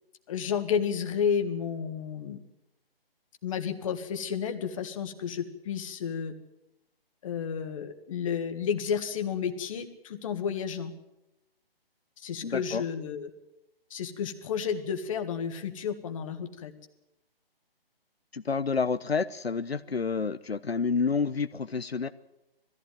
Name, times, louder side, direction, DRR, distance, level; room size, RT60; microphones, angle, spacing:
voice 1, 0.3-2.4 3.4-6.3 7.2-10.9 12.2-13.3 13.9-16.7, left 7 dB, 35° left, 7 dB, 1.8 m, -31 dB
voice 2, 12.4-12.8 18.3-22.1, left 5 dB, 85° left, 10 dB, 1.0 m, -29 dB
20.0 x 15.0 x 9.3 m, 0.92 s
figure-of-eight pair, 145°, 30 cm